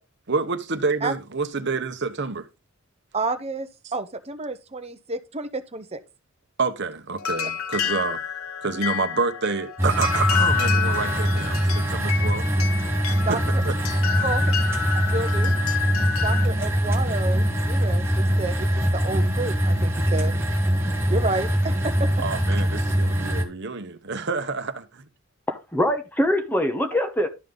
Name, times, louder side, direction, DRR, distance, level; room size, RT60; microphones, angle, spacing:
voice 1, 0.3-2.5 6.6-8.2 8.6-12.5 13.1-13.4 13.6-13.7 14.1-14.3 22.2-25.0, right 4 dB, 55° right, 1.0 m, -28 dB
voice 2, 3.1-6.0 13.3-13.6 14.2-14.5 14.9-15.5 16.2-20.3 21.1-22.1, right 3 dB, 30° right, 0.8 m, -30 dB
sound 1, 7.2-16.5, left 7 dB, 75° left, 0.8 m, -29 dB
sound 2, 9.8-23.4, equal, 10° right, 1.4 m, -23 dB
voice 3, 25.5-27.3, left 1 dB, 10° left, 1.0 m, -23 dB
12.0 x 5.3 x 3.8 m
head